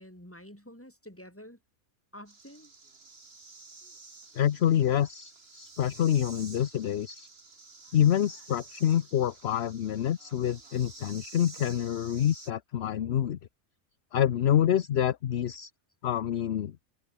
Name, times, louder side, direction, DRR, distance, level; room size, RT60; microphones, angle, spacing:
voice 1, 0.0-1.6 2.1-2.7, equal, 10° left, 5.5 m, -48 dB
sound 1, 2.3-12.5, right 4 dB, 40° right, 2.4 m, -51 dB
voice 2, 4.3-7.3 7.9-13.4 14.1-15.7 16.0-16.7, left 10 dB, 55° left, 0.8 m, -27 dB
omnidirectional pair, 1.6 m